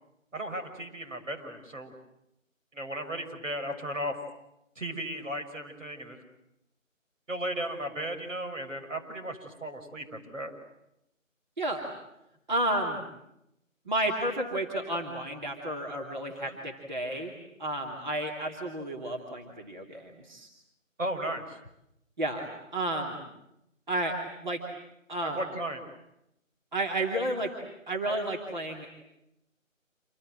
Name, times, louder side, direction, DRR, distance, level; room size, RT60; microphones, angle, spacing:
voice 1, 0.3-1.9 2.7-4.1 4.8-6.2 7.3-10.5 16.4-16.6 21.0-21.6 25.2-25.8, right 1 dB, 70° right, 4 dB, 6.3 m, -35 dB
voice 2, 11.6-11.9 12.5-13.0 13.9-17.3 17.6-20.5 22.2-23.2 23.9-24.1 24.4-24.6 25.1-25.4 26.7-27.5 27.9-28.9, right 1 dB, 35° right, 0 dB, 2.9 m, -31 dB
28.0 x 27.5 x 7.7 m, 0.84 s
figure-of-eight pair, 175°, 40 cm